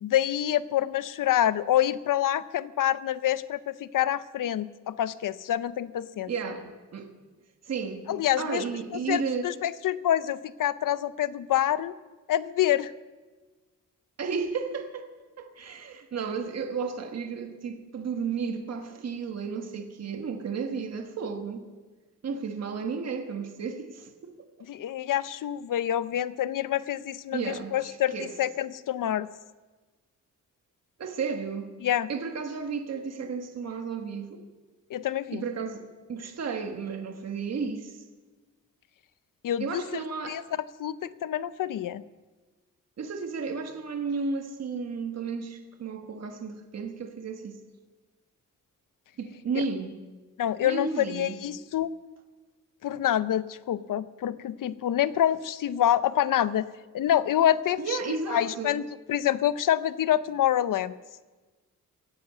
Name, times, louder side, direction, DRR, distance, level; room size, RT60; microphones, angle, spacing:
voice 1, 0.0-6.3 8.1-8.6 9.1-11.9 12.3-12.9 24.7-29.3 31.8-32.1 34.9-35.4 39.4-40.4 40.8-42.0 50.4-51.9 52.8-56.7 56.9-58.0 58.3-61.0, left 11 dB, 75° left, 0.6 m, -27 dB
voice 2, 6.3-7.1 7.6-9.5 14.2-15.1 15.4-21.6 22.2-24.4 27.3-28.3 31.0-31.7 32.1-34.5 35.3-38.1 39.6-40.4 43.0-47.6 49.2-50.0 50.6-51.4 57.8-58.8, right 5 dB, 50° right, 1.3 m, -33 dB
16.5 x 10.5 x 8.1 m
wide cardioid pair, 170°, 32 cm